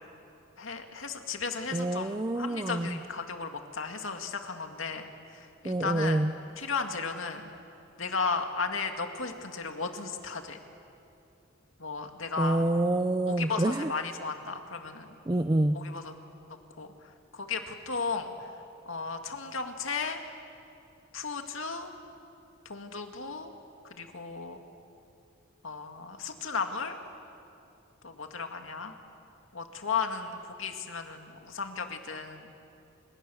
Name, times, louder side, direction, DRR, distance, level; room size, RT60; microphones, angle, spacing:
voice 1, 0.6-6.3 6.6-7.4 8.0-10.6 11.8-12.7 13.3-15.2 15.7-16.1 16.5-16.9 17.3-18.5 18.9-20.2 21.1-21.9 22.7-23.5 23.9-24.6 25.6-27.0 28.0-28.9 29.5-32.5, left 4 dB, 85° left, 5 dB, 2.3 m, -35 dB
voice 2, 1.7-3.0 5.6-6.3 12.4-13.9 15.3-15.8, right 1 dB, 20° right, 9 dB, 0.5 m, -27 dB
28.5 x 27.5 x 7.2 m, 2.8 s
head